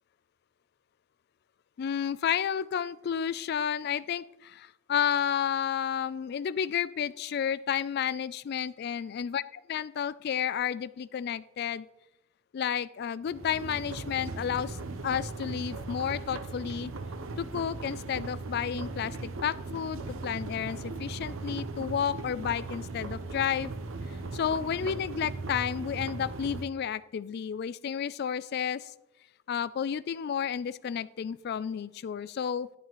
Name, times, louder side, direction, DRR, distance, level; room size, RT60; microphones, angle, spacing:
voice 1, 1.8-11.9 12.5-14.8 15.0-16.9 17.4-23.7 24.1-28.9 29.5-32.7, left 8 dB, 55° left, 16 dB, 0.3 m, -31 dB
sound 1, 13.2-26.7, right 3 dB, 90° right, 0.7 m, -38 dB
11.0 x 7.3 x 3.1 m, 0.91 s
head